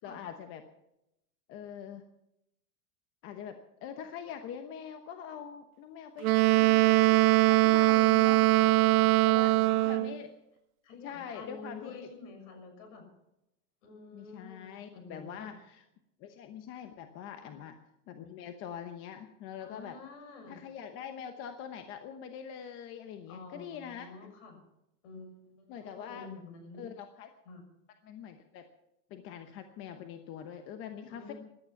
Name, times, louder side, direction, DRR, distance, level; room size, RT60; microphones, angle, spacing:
voice 1, 0.0-0.7 1.5-2.0 3.2-8.7 9.2-10.3 11.0-12.1 14.1-15.8 16.2-17.8 18.1-20.0 20.5-24.1 25.7-26.3 26.8-27.3 28.0-28.7 29.1-31.3, left 8 dB, 25° left, 7 dB, 1.0 m, -44 dB
Wind instrument woodwind instrument, 6.2-10.2, right 20 dB, 70° right, 0.9 m, -22 dB
voice 2, 8.2-10.0 10.8-13.0 13.8-15.5 17.4-17.5 19.6-20.6 23.3-24.6 25.0-26.9 27.4-27.6 31.1-31.4, left 3 dB, 55° left, 5 dB, 6.8 m, -49 dB
18.0 x 12.0 x 5.8 m, 0.86 s
supercardioid pair, 155°, 46 cm